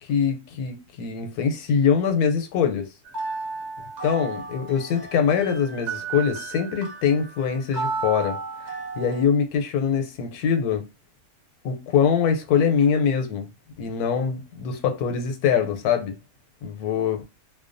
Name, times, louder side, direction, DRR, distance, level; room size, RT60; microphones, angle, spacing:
voice 1, 0.0-2.9 4.0-8.4 9.0-10.8 11.6-13.5 13.8-16.2 16.6-17.2, left 7 dB, 85° left, 1.1 m, -23 dB
sound 1, 3.0-9.2, right 4 dB, 35° right, 0.8 m, -33 dB
2.5 x 2.2 x 2.5 m
omnidirectional pair, 1.6 m